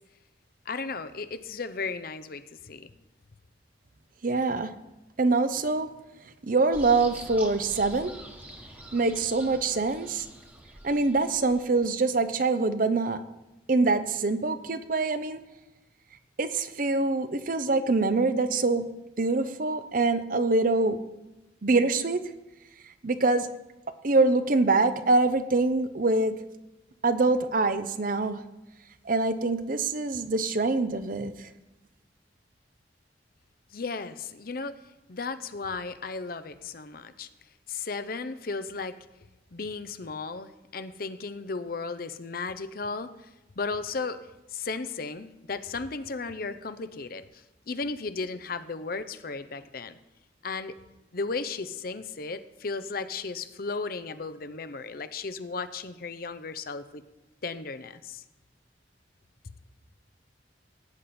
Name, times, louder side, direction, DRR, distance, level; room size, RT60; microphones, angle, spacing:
voice 1, 0.7-2.9 33.7-34.7 35.1-37.3 37.7-39.0 39.5-43.3 43.6-44.2 44.5-50.0 50.4-50.8 51.1-57.0 57.4-58.2, left 4 dB, 50° left, 11 dB, 0.7 m, -35 dB
voice 2, 4.2-4.7 5.2-5.9 6.4-8.2 8.9-10.3 10.8-13.2 13.7-15.4 16.4-21.1 21.6-22.3 23.0-23.6 24.0-26.4 27.0-28.5 29.0-31.5, right 3 dB, 45° right, 11 dB, 0.7 m, -25 dB
sound 1, 6.7-12.2, right 1 dB, 10° right, 1.4 m, -45 dB
16.5 x 9.5 x 4.3 m, 1.0 s
head